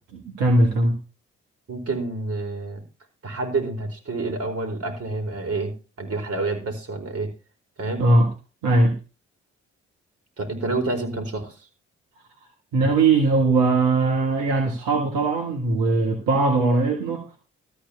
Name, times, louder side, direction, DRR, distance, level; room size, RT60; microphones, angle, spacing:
voice 1, 0.4-1.0 8.0-8.3 8.6-9.0 12.7-17.3, right 2 dB, 85° right, 2 dB, 1.7 m, -20 dB
voice 2, 1.7-2.8 3.2-7.3 7.8-8.0 10.4-11.6, right 3 dB, 50° right, 3 dB, 4.5 m, -28 dB
13.5 x 4.7 x 8.4 m, 0.32 s
hypercardioid pair, 40°, 31 cm